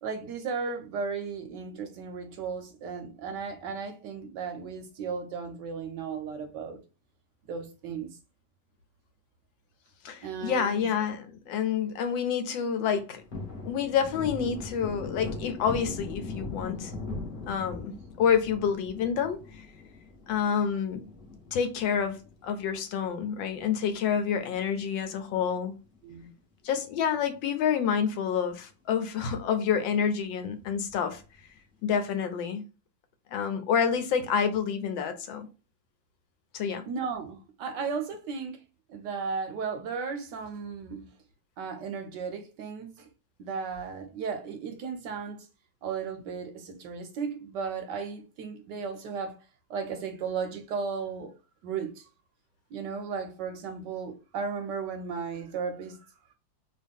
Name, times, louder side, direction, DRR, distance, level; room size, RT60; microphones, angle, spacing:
voice 1, 0.0-6.8 7.5-8.2 10.2-10.9 26.0-26.3 36.9-38.6 38.9-41.1 41.6-43.1 43.4-45.5 45.8-49.4 49.7-51.3 51.6-52.1 52.7-56.1, right 5 dB, 70° right, 1.1 m, -35 dB
voice 2, 10.0-13.2 13.7-16.9 17.5-19.4 20.3-21.0 21.5-25.7 26.6-31.2 31.8-32.6 33.3-35.5 36.5-36.8, left 7 dB, 75° left, 1.3 m, -28 dB
Thunder, 13.0-23.6 24.0-24.1 24.5-26.0 26.2-26.4 26.7-27.6 28.0-28.1 28.4-28.5 30.9-31.4, left 3 dB, 30° left, 0.8 m, -41 dB
3.0 x 2.8 x 3.4 m
omnidirectional pair, 2.2 m